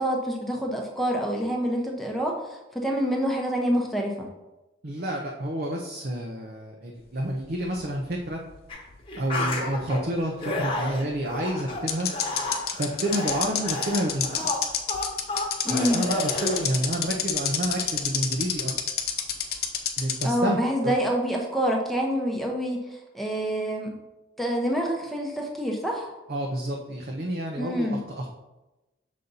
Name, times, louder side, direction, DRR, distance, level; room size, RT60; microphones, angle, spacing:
voice 1, 0.0-2.4 2.7-4.3 15.6-16.0 20.2-23.9 24.4-26.1 27.6-28.0, equal, ahead, -1 dB, 0.8 m, -27 dB
voice 2, 4.8-8.4 9.2-12.1 12.8-14.6 15.7-18.7 20.0-20.9 26.3-28.3, right 1 dB, 50° right, -1 dB, 0.7 m, -29 dB
sound 1, 7.4-8.9 9.2-9.3 11.1-11.2 11.9-20.3, left 9 dB, 55° left, 0.7 m, -27 dB
sound 2, 8.7-8.8 9.1-10.0 10.4-16.6, left 2 dB, 30° left, 1.0 m, -31 dB
6.6 x 4.1 x 4.0 m, 1.0 s
head